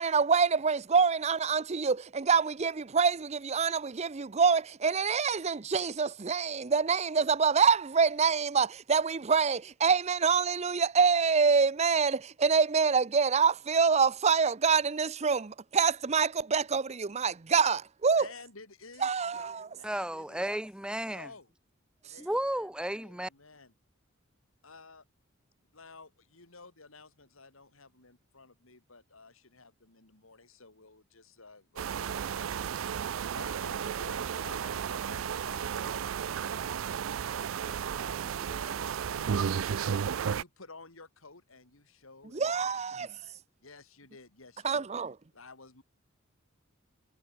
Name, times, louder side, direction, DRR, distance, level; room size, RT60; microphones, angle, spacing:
voice 1, 0.0-18.3 19.0-19.7 42.3-43.1 44.6-45.1, right 5 dB, 35° right, 0.6 m, -26 dB
voice 2, 18.1-20.6 21.1-21.5 22.1-23.7 24.6-25.0 25.7-36.1 36.4-43.3 43.6-44.8 45.3-45.8, left 3 dB, 85° left, 3.6 m, -53 dB
voice 3, 19.8-21.3 22.2-23.3, right 1 dB, 5° right, 1.0 m, -33 dB
sound 1, 31.8-40.4, right 7 dB, 75° right, 0.4 m, -33 dB
head